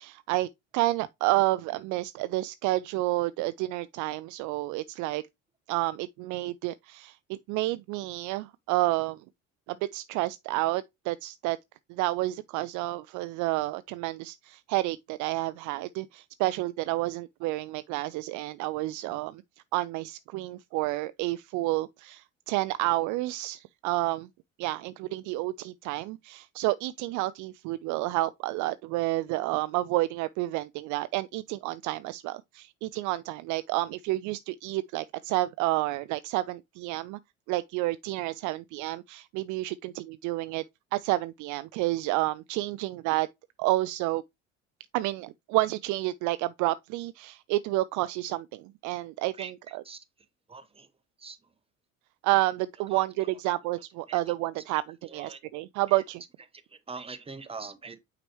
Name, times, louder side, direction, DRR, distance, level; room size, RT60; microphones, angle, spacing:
voice 1, 0.0-5.2 5.7-9.2 9.7-11.6 11.9-19.4 19.7-24.3 24.6-37.2 37.5-40.6 40.9-43.3 43.6-44.2 44.9-49.8 52.2-56.2, right 18 dB, 50° right, 0.5 m, -30 dB
voice 2, 50.5-50.9 51.2-51.4 52.9-53.0 54.1-54.2 55.0-55.4 55.9-56.0 56.7-58.0, right 4 dB, 15° right, 1.1 m, -42 dB
8.8 x 5.0 x 3.0 m
figure-of-eight pair, 60°, 40 cm